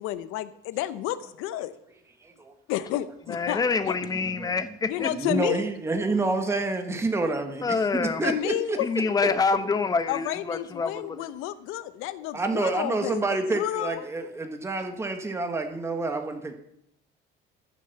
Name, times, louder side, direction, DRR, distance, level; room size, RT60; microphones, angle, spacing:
voice 1, 0.0-1.7 2.7-3.9 4.9-5.6 8.2-8.8 10.1-13.2 13.5-14.1, left 13 dB, 85° left, 14 dB, 1.0 m, -31 dB
voice 2, 2.2-2.5 3.4-3.6 4.1-7.6 7.9-8.8 12.3-16.5, right 3 dB, 15° right, 5 dB, 1.4 m, -28 dB
voice 3, 3.3-5.1 7.6-8.2 8.8-11.3, left 4 dB, 20° left, 11 dB, 0.8 m, -26 dB
14.5 x 7.0 x 7.1 m, 0.75 s
cardioid pair, 160°, 21 cm